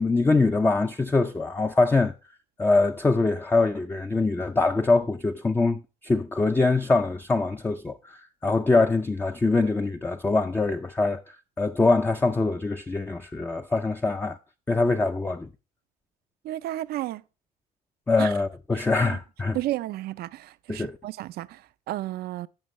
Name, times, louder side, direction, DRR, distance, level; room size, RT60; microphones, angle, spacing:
voice 1, 0.0-2.1 2.6-14.4 14.7-15.5 18.1-19.6 20.7-21.0, left 3 dB, 10° left, 0.4 m, -23 dB
voice 2, 16.4-17.2 18.2-18.3 18.7-19.2 19.5-22.5, right 15 dB, 65° right, 0.4 m, -33 dB
14.5 x 5.4 x 3.1 m
cardioid pair, 110°, 17 cm